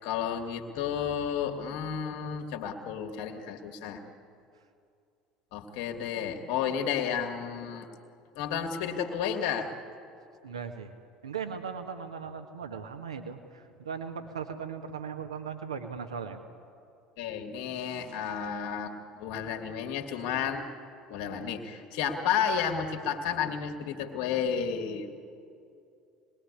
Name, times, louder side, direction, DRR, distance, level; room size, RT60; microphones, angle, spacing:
voice 1, 0.0-4.0 5.5-7.9 8.3-9.7 17.2-20.7 21.1-25.1, left 7 dB, 60° left, 4 dB, 2.5 m, -32 dB
voice 2, 10.4-10.9 11.2-16.4, right 6 dB, 75° right, 6 dB, 1.6 m, -38 dB
27.5 x 20.5 x 9.8 m, 2.6 s
figure-of-eight pair, 65°, 3 cm